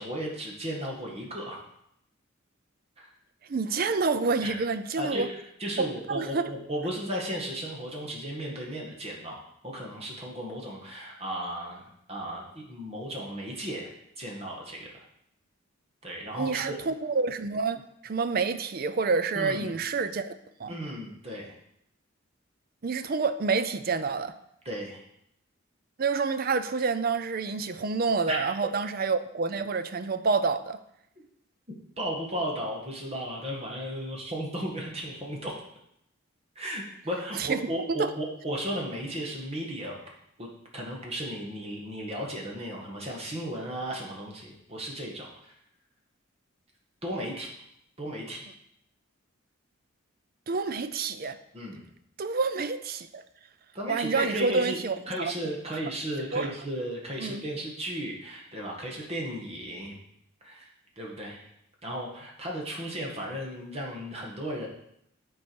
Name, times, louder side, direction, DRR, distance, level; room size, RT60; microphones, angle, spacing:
voice 1, 0.0-1.6 3.0-3.1 4.4-4.5 5.0-9.4 9.6-11.8 12.1-13.9 14.2-15.0 16.0-16.8 19.3-19.7 20.7-21.5 24.6-25.0 28.3-28.4 32.0-35.5 36.5-39.9 40.4-40.5 40.7-45.3 47.0-47.5 48.0-48.4 51.5-51.8 53.7-54.8 55.1-59.9 60.4-60.7 61.0-61.5 61.8-64.7, equal, 30° right, -2 dB, 1.6 m, -35 dB
voice 2, 3.5-5.3 5.8-6.5 16.4-20.8 22.8-24.3 26.0-30.8 37.3-37.7 38.0-38.1 50.5-51.4 52.2-53.2 53.9-55.3 56.3-56.5 57.2-57.4, right 4 dB, 45° right, 11 dB, 0.5 m, -28 dB
9.8 x 4.6 x 4.6 m, 0.76 s
head